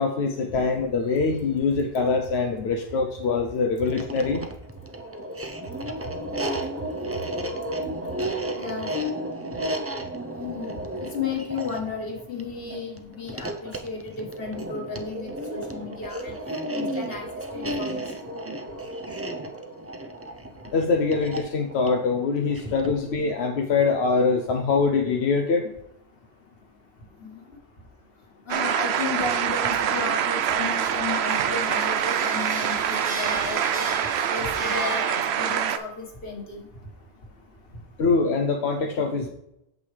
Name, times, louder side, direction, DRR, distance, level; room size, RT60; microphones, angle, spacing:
voice 1, 0.0-4.4 20.7-25.7 38.0-39.3, left 4 dB, 85° left, 3 dB, 1.0 m, -23 dB
sound 1, 3.8-23.1, right 1 dB, 20° right, 0.5 m, -33 dB
voice 2, 8.5-8.9 10.4-10.7 11.0-16.3 16.7-17.3 17.5-18.0 22.6-22.7 27.2-27.4 28.5-36.6, left 4 dB, 65° left, 1 dB, 1.7 m, -34 dB
sound 2, 28.5-35.8, right 9 dB, 90° right, 0.9 m, -25 dB
sound 3, 30.8-35.7, right 2 dB, 60° right, 2.0 m, -36 dB
8.5 x 6.9 x 3.3 m, 0.81 s
omnidirectional pair, 1.1 m